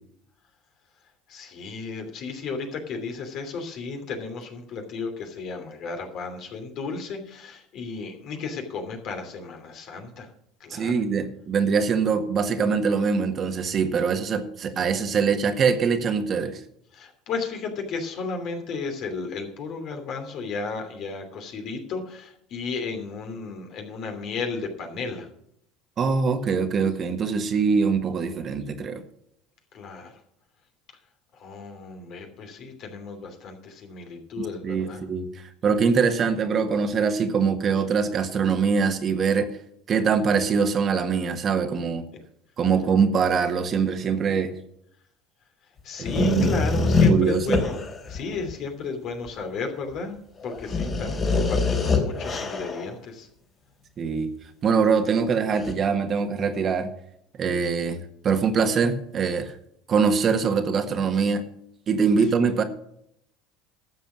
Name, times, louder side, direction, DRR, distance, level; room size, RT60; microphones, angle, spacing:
voice 1, 1.3-10.3 10.6-11.0 16.9-25.3 29.7-30.1 31.3-35.0 45.8-50.2 50.4-53.3, left 4 dB, 55° left, 5 dB, 2.9 m, -34 dB
voice 2, 10.7-16.6 26.0-29.0 34.4-39.5 39.9-42.1 42.6-44.5 46.2-46.5 47.1-47.6 54.0-54.3 54.6-56.9 57.4-59.5 59.9-61.4 61.9-62.6, right 5 dB, 40° right, 7 dB, 1.6 m, -23 dB
sound 1, 46.0-48.5 49.3-49.4 49.9-50.0 50.4-52.9 55.6-55.7, left 4 dB, 35° left, 3.0 m, -24 dB
12.5 x 7.2 x 6.2 m, 0.72 s
hypercardioid pair, 80°, 0 cm